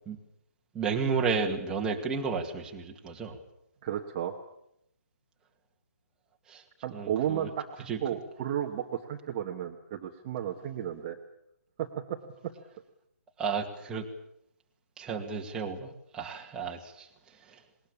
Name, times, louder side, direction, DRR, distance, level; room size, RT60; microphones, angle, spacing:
voice 1, 0.7-3.4 6.5-6.6 6.9-7.5 7.9-8.0 13.4-14.1 15.0-17.1 17.5-17.6, right 5 dB, 10° right, 0 dB, 2.2 m, -32 dB
voice 2, 3.8-4.3 6.8-11.2 11.8-12.2 12.4-12.5, right 10 dB, 25° right, 2 dB, 1.5 m, -33 dB
20.0 x 20.0 x 8.6 m, 0.79 s
hypercardioid pair, 155°, 9 cm